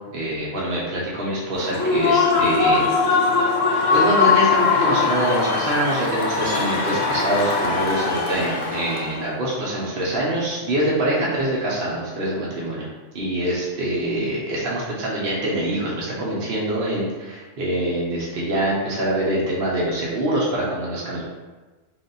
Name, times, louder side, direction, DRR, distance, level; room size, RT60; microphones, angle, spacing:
voice 1, 0.1-2.9 3.9-12.9 13.1-21.2, right 1 dB, 55° right, -5 dB, 0.9 m, -24 dB
Human voice / Cheering / Applause, 1.6-9.2, left 4 dB, 85° left, 1.0 m, -21 dB
3.4 x 2.5 x 3.9 m, 1.2 s
omnidirectional pair, 1.3 m